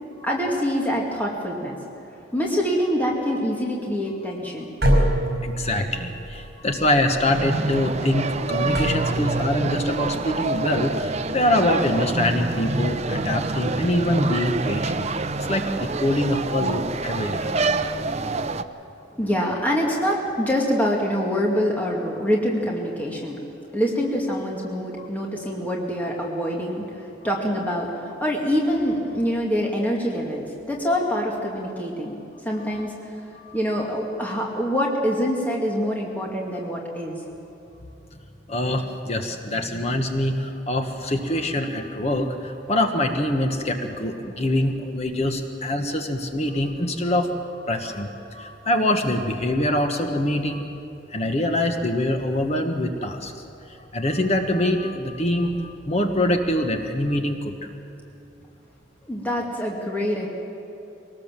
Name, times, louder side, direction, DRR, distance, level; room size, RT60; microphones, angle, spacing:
voice 1, 0.2-1.8 2.3-4.7 19.1-23.4 23.7-32.2 32.4-33.1 33.5-37.2 59.0-60.3, equal, 10° left, -2 dB, 2.1 m, -25 dB
sound 1, 4.8-11.1, right 1 dB, 55° right, 4.9 m, -26 dB
voice 2, 4.9-15.1 15.3-18.1 33.4-33.6 38.5-50.6 51.1-53.4 53.8-57.7, left 1 dB, 35° left, 5 dB, 1.2 m, -24 dB
sound 2, 7.3-18.6, right 3 dB, 35° right, 0.6 m, -27 dB
23.0 x 19.0 x 7.5 m, 2.9 s
head